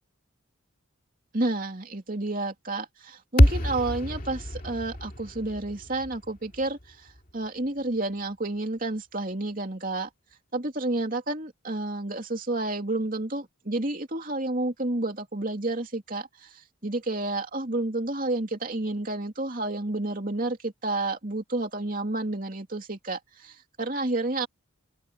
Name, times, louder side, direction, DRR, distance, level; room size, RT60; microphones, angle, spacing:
voice 1, 1.3-7.1 7.3-10.1 10.5-24.5, right 2 dB, 40° right, 2.9 m, -30 dB
sound 1, 3.4-7.7, equal, 45° left, 2.6 m, -26 dB
open air
head